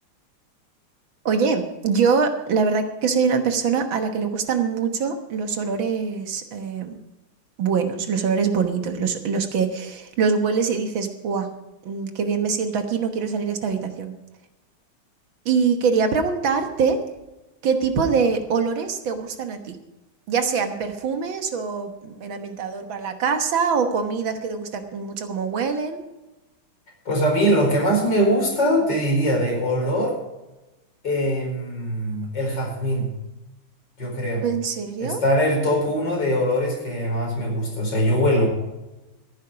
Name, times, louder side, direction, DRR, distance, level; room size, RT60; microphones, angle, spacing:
voice 1, 1.3-7.0 7.6-11.5 11.9-14.1 15.5-17.0 17.6-19.8 20.3-26.0 34.4-35.2, right 5 dB, 70° right, 6 dB, 2.0 m, -24 dB
voice 2, 27.1-30.1 31.0-33.1 34.0-34.4 35.0-38.5, equal, 55° left, -1 dB, 5.5 m, -22 dB
14.0 x 11.0 x 5.0 m, 1.0 s
omnidirectional pair, 2.3 m